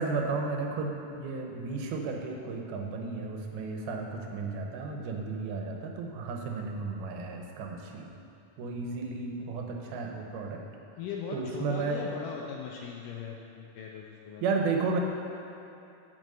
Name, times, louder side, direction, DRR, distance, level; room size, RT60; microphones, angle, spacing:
voice 1, 0.0-8.2 8.6-10.6 11.3-12.0 14.4-15.0, right 4 dB, 80° right, 2 dB, 2.8 m, -33 dB
voice 2, 11.0-14.4, left 6 dB, 80° left, -1 dB, 1.9 m, -39 dB
9.1 x 6.0 x 7.9 m, 2.8 s
omnidirectional pair, 4.4 m